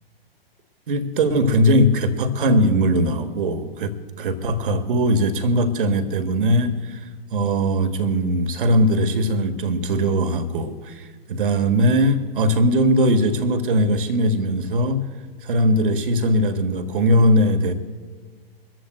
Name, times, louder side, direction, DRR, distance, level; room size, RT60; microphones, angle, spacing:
voice 1, 0.9-7.0 7.3-15.0 15.4-17.7, equal, 60° right, 1.4 m, -20 dB
23.5 x 14.0 x 2.2 m
figure-of-eight pair, 110°, 30 cm